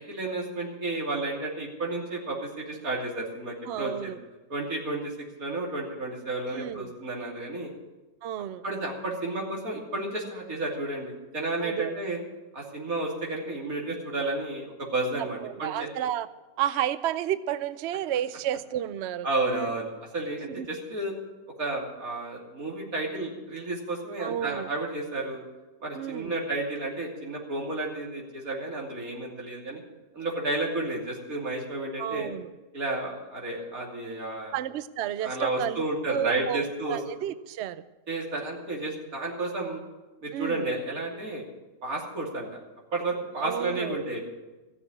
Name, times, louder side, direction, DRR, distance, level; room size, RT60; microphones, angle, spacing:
voice 1, 0.0-4.1 4.5-5.1 5.4-7.7 8.6-12.2 12.5-15.9 19.2-21.1 21.6-25.4 25.8-29.8 30.1-32.3 32.7-34.5 35.2-37.0 38.1-39.8 40.2-41.4 41.8-42.5 42.9-44.2, right 2 dB, 55° right, -2 dB, 3.3 m, -32 dB
voice 2, 3.7-4.2 6.5-6.9 8.2-8.6 11.6-11.9 15.4-16.3 16.6-19.7 20.5-20.7 24.2-24.7 25.9-26.4 32.0-32.5 34.5-37.8 40.3-40.7 43.4-44.0, right 11 dB, 85° right, 14 dB, 0.6 m, -31 dB
15.5 x 7.0 x 9.7 m, 1.1 s
omnidirectional pair, 1.8 m